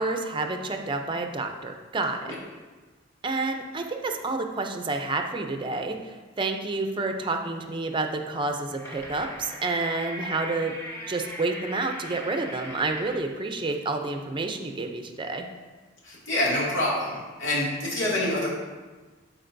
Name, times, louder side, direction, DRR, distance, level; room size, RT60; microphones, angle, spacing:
voice 1, 0.0-2.2 3.2-10.8 11.1-15.5, right 3 dB, 25° right, 5 dB, 0.5 m, -29 dB
sound 1, 8.4-13.3, equal, 15° left, 1.0 m, -40 dB
voice 2, 16.0-17.1 17.4-18.5, left 1 dB, 80° left, -6 dB, 2.3 m, -26 dB
12.0 x 4.5 x 2.6 m, 1.3 s
head